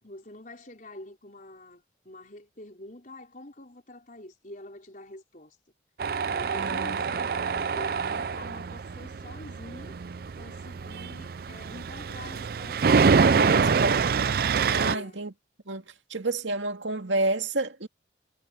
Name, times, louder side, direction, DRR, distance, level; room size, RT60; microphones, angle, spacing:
voice 1, 0.0-5.6 6.3-10.0 10.4-13.8 14.8-15.2, left 1 dB, 45° left, 4.7 m, -46 dB
Tools, 6.0-14.9, right 5 dB, 50° right, 0.4 m, -26 dB
voice 2, 6.5-7.0 13.4-14.0 14.7-15.3 15.7-15.8 16.1-17.9, right 2 dB, 80° right, 2.3 m, -29 dB
head